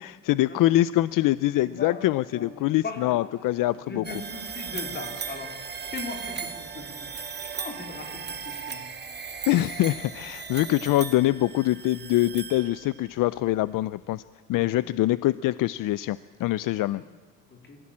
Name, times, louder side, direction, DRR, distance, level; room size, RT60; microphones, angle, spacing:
voice 1, 0.0-4.0 9.5-14.2 14.5-17.0, left 15 dB, 65° left, 18 dB, 0.6 m, -24 dB
voice 2, 1.6-2.5 2.8-3.3 3.9-5.6 5.9-8.9 14.5-14.8 16.9-17.1 17.5-17.8, left 3 dB, 30° left, 4 dB, 4.1 m, -39 dB
sound 1, 4.0-13.1, right 6 dB, 30° right, 2.3 m, -37 dB
26.5 x 16.0 x 8.6 m, 1.4 s
cardioid pair, 155°, 35 cm